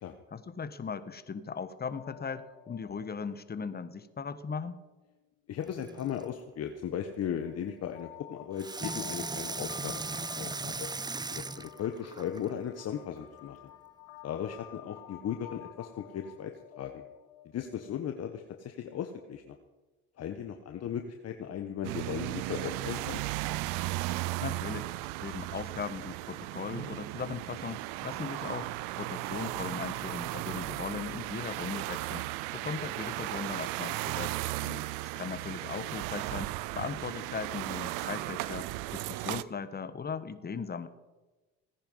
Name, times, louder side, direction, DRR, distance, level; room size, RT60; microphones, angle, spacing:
voice 1, 0.3-4.8 24.4-24.9 25.2-32.2 32.5-34.3 35.1-40.9, left 5 dB, 30° left, 12 dB, 1.4 m, -38 dB
sound 1, 1.6-5.1 5.7-18.3, left 15 dB, 90° left, 1.1 m, -52 dB
voice 2, 5.5-10.0 10.3-10.9 11.3-13.6 14.2-17.0 17.5-19.6 20.2-23.2 34.6-34.8, left 9 dB, 50° left, 6 dB, 1.3 m, -37 dB
Water tap faucet / Sink (filling or washing), 5.6-6.3 8.6-12.5 13.2-13.3, right 3 dB, 15° right, 0.6 m, -38 dB
sound 2, 21.8-39.4, right 18 dB, 80° right, 0.6 m, -36 dB
18.0 x 10.0 x 5.5 m, 1.2 s
supercardioid pair, 75°, 32 cm